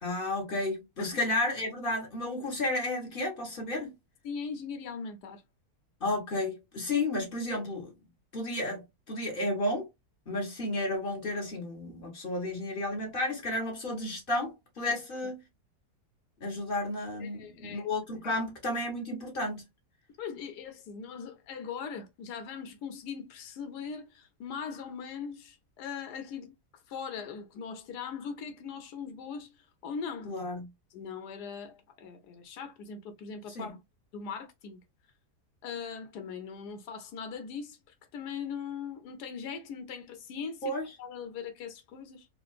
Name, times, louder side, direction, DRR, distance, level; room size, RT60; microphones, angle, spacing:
voice 1, 0.0-3.9 6.0-7.9 8.3-9.9 10.3-15.4 16.4-19.6 30.2-30.7 33.5-33.7 40.6-40.9, left 1 dB, 35° left, 1.4 m, -32 dB
voice 2, 4.2-5.4 17.2-17.9 18.2-18.4 20.2-29.5 29.8-30.3 30.9-33.8 34.1-34.8 35.6-37.8 38.1-42.3, left 6 dB, 85° left, 1.3 m, -40 dB
4.2 x 2.5 x 2.4 m
omnidirectional pair, 1.7 m